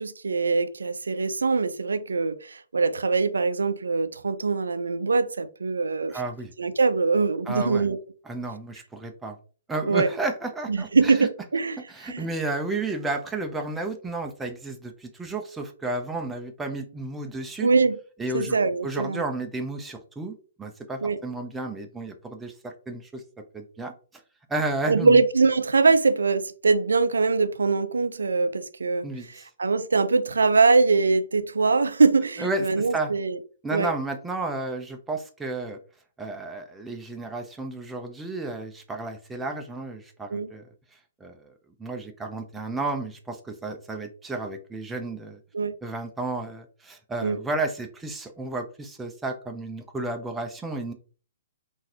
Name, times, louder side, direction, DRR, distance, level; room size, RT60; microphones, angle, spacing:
voice 1, 0.0-6.2 6.6-8.0 9.9-10.1 10.7-11.8 12.1-12.2 17.6-18.0 18.3-19.2 21.0-21.2 24.9-29.1 29.6-33.4 33.7-33.9 40.3-40.5 45.5-45.7 47.2-47.4, right 4 dB, 75° right, 0.4 m, -22 dB
voice 2, 6.1-6.5 7.5-7.9 8.2-9.4 9.7-11.3 11.9-17.7 18.2-18.6 18.8-23.2 23.5-23.9 24.5-25.2 29.0-29.5 32.4-33.1 33.6-35.8 36.2-41.5 41.8-45.4 45.8-50.9, right 2 dB, 10° right, 0.5 m, -32 dB
3.7 x 2.6 x 2.8 m
figure-of-eight pair, 120°, 0 cm